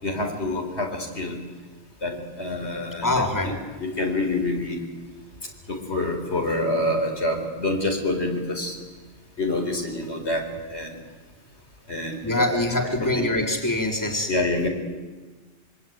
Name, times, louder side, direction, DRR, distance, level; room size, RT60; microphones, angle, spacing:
voice 1, 0.0-1.3 2.0-3.5 3.8-4.8 5.7-8.8 9.4-10.9 11.9-12.5 13.0-13.3 14.3-14.7, left 2 dB, 80° left, 2 dB, 4.5 m, -27 dB
voice 2, 3.0-3.6 12.2-14.3, left 1 dB, 15° left, 0 dB, 3.7 m, -24 dB
25.5 x 24.5 x 9.3 m, 1.3 s
omnidirectional pair, 1.1 m